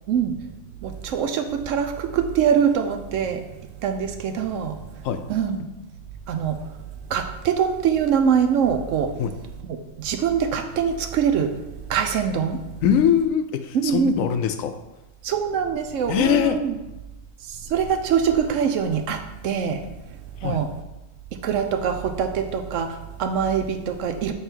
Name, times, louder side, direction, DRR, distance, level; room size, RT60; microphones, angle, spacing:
voice 1, 0.8-3.4 3.8-4.8 5.3-5.6 6.3-6.6 7.1-9.1 9.6-11.5 11.9-12.6 13.7-14.2 15.2-16.8 17.4-19.8 20.4-20.7 21.4-24.3, right 7 dB, 75° right, 6 dB, 0.9 m, -23 dB
voice 2, 12.8-14.7 16.1-16.6 20.4-20.6, left 9 dB, 85° left, 9 dB, 1.0 m, -22 dB
7.3 x 3.4 x 4.4 m, 1.0 s
omnidirectional pair, 1.4 m